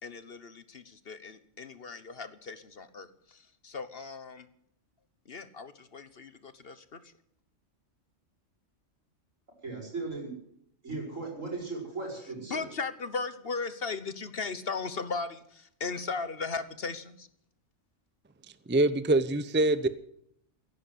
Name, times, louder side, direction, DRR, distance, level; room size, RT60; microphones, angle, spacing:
voice 1, 0.0-4.5 5.2-7.1 12.5-17.3, left 4 dB, 50° left, 12 dB, 1.3 m, -37 dB
voice 2, 9.6-10.3 10.8-12.6, right 3 dB, 85° right, 1 dB, 6.8 m, -37 dB
voice 3, 18.7-19.9, right 2 dB, 10° right, 14 dB, 0.6 m, -24 dB
16.0 x 11.0 x 8.0 m, 0.70 s
omnidirectional pair, 1.3 m